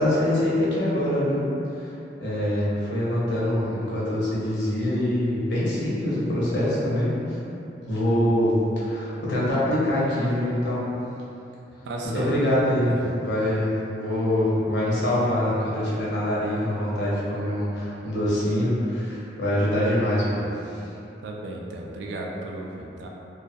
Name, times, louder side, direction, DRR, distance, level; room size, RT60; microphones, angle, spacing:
voice 1, 0.0-1.5 1.7-1.9 2.2-7.4 7.8-10.9 12.0-20.5, left 1 dB, 75° left, -7 dB, 0.6 m, -24 dB
voice 2, 11.8-13.2 21.2-23.1, right 1 dB, 70° right, 0 dB, 0.3 m, -34 dB
2.3 x 2.2 x 2.6 m, 2.9 s
head